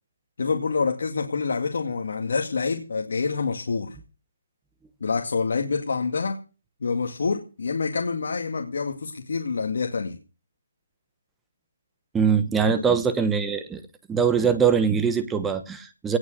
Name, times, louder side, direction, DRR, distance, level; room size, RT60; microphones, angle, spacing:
voice 1, 0.4-4.0 5.0-6.4 6.8-10.2 12.6-13.0, left 4 dB, 60° left, 3 dB, 2.1 m, -27 dB
voice 2, 12.1-13.8 14.1-16.2, right 6 dB, 5° right, 10 dB, 1.0 m, -22 dB
18.5 x 6.4 x 8.1 m, 0.34 s
hypercardioid pair, 170°, 0 cm